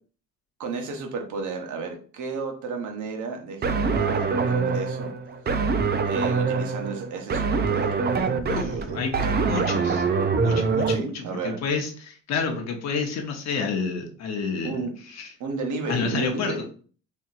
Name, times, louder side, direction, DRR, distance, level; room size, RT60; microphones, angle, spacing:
voice 1, 0.6-5.1 6.1-9.3 9.7-9.8 10.9-11.6 14.6-14.9 15.4-16.6, right 4 dB, 75° right, 3 dB, 1.0 m, -33 dB
sound 1, 3.6-11.0, right 4 dB, 35° right, 0.4 m, -24 dB
voice 2, 8.5-10.1 10.4-15.3 15.9-16.6, left 5 dB, 60° left, 3 dB, 0.8 m, -29 dB
4.3 x 2.9 x 2.4 m, 0.41 s
cardioid pair, 90°, 30 cm